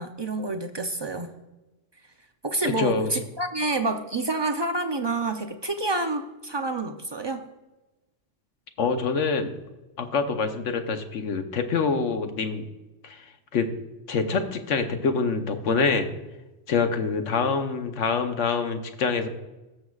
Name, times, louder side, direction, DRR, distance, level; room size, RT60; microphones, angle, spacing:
voice 1, 0.0-1.3 2.4-7.4, right 2 dB, 45° right, 4 dB, 0.3 m, -28 dB
voice 2, 2.6-3.1 8.8-9.6 10.0-12.7 13.0-13.2 13.5-13.7 14.1-16.1 16.7-19.3, left 5 dB, 75° left, 7 dB, 1.2 m, -25 dB
19.0 x 6.6 x 2.4 m, 1.1 s
omnidirectional pair, 1.3 m